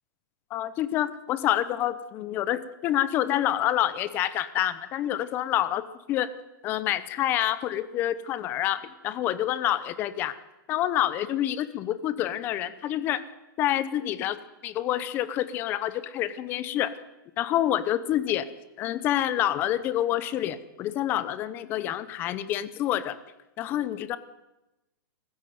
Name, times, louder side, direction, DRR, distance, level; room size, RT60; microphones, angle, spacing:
voice 1, 0.5-6.3 6.6-10.4 10.7-13.2 13.6-14.4 14.6-16.9 17.4-18.5 18.8-23.2 23.6-24.2, left 12 dB, 15° left, 15 dB, 0.8 m, -27 dB
20.0 x 15.0 x 9.3 m, 0.98 s
hypercardioid pair, 175°, 12 cm